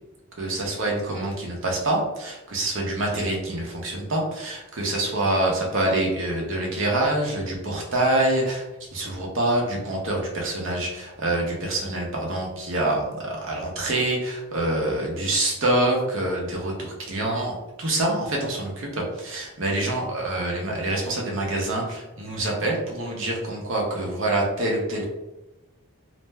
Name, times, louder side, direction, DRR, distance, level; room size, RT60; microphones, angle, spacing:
voice 1, 0.4-25.0, right 1 dB, 60° right, -1 dB, 0.7 m, -26 dB
2.5 x 2.1 x 3.2 m, 1.0 s
head